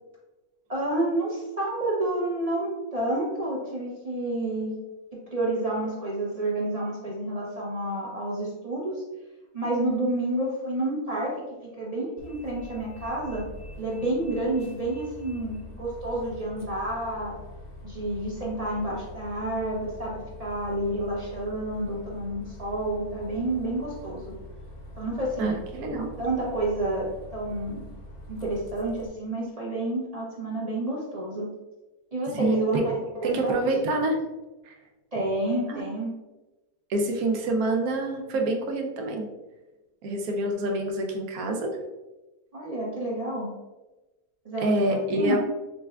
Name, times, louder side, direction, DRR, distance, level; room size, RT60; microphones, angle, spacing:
voice 1, 0.7-4.7 5.1-9.0 9.5-11.4 11.6-13.5 13.8-17.3 17.8-24.4 25.0-25.6 26.2-27.8 28.3-31.5 32.1-33.6 35.1-36.1 42.5-43.5 44.4-44.8 45.1-45.4, right 1 dB, 45° right, -5 dB, 0.5 m, -29 dB
Bus, 12.2-29.1, left 1 dB, 40° left, 0.6 m, -44 dB
voice 2, 25.4-26.1 32.3-32.8 33.2-34.2 34.6-34.7 35.7-35.8 36.9-39.3 40.0-41.8 44.6-45.4, right 2 dB, 80° right, 2 dB, 1.1 m, -26 dB
6.6 x 2.2 x 2.3 m, 1.1 s
omnidirectional pair, 1.5 m